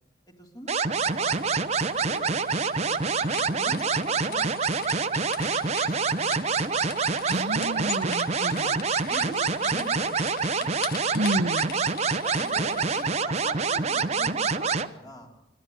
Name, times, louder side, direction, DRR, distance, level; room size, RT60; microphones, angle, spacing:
voice 1, 0.4-2.3 2.8-4.5 5.0-6.9 7.6-7.9 8.5-10.7 11.7-11.9 12.2-15.3, equal, 25° left, 2 dB, 3.6 m, -44 dB
sound 1, 0.7-14.9, right 4 dB, 40° right, 0.8 m, -26 dB
sound 2, 1.0-13.1, left 8 dB, 55° left, 1.2 m, -42 dB
voice 2, 7.3-8.8 11.1-11.7, right 1 dB, 85° right, 13 dB, 1.0 m, -30 dB
26.5 x 12.5 x 9.3 m, 0.98 s
head